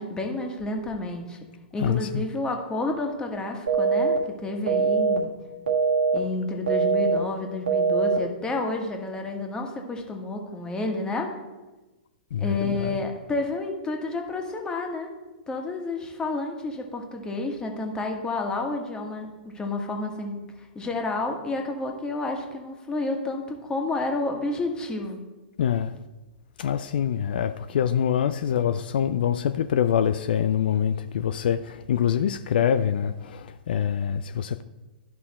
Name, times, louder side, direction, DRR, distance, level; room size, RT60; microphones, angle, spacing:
voice 1, 0.0-1.4 1.7-5.3 6.1-11.3 12.4-15.1 15.5-25.2, left 2 dB, 15° left, 1.6 m, -30 dB
voice 2, 1.8-2.3 12.3-13.0 25.6-25.9 26.6-34.6, left 9 dB, 65° left, 0.4 m, -25 dB
sound 1, 3.7-4.2 4.7-5.2 5.7-6.2 6.7-7.2 7.7-8.2, right 5 dB, 85° right, 1.6 m, -22 dB
12.0 x 5.5 x 4.2 m
hypercardioid pair, 115°, 5 cm